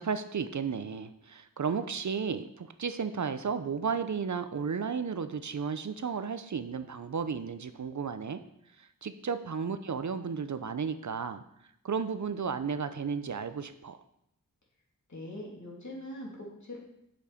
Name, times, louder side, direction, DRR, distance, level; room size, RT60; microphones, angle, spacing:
voice 1, 0.0-8.4 8.8-11.4 11.8-14.0, right 6 dB, 55° right, 11 dB, 0.6 m, -33 dB
voice 2, 15.1-16.8, left 1 dB, 55° left, -3 dB, 3.1 m, -42 dB
8.0 x 7.0 x 5.0 m, 0.78 s
wide cardioid pair, 55°, 35 cm